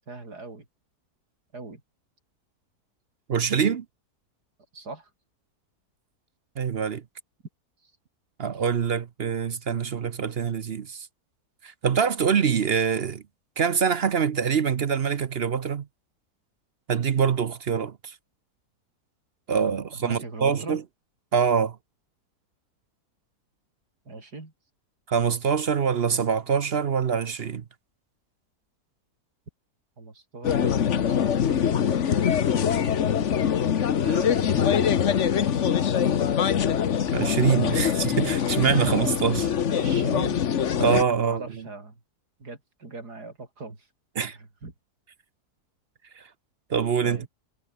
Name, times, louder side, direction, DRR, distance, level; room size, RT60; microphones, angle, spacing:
voice 1, 0.1-0.6 1.5-1.8 4.7-5.1 7.8-7.9 19.9-20.8 24.1-24.5 30.0-33.0 33.4-33.5 34.0-35.9 37.7-37.9 39.7-40.4 41.2-42.0 42.4-43.9 44.2-44.7 47.0-47.3, right 3 dB, 90° right, 5.0 m, -40 dB
voice 2, 3.3-3.8 6.6-7.0 8.4-11.1 11.6-13.2 13.6-15.9 16.9-18.1 19.5-20.8 21.3-21.8 25.1-27.6 37.1-39.5 40.8-41.7 44.2-44.4 46.2-46.3 46.7-47.3, right 7 dB, 50° right, 0.9 m, -24 dB
sound 1, 30.4-41.0, left 8 dB, 50° left, 1.2 m, -23 dB
omnidirectional pair, 1.7 m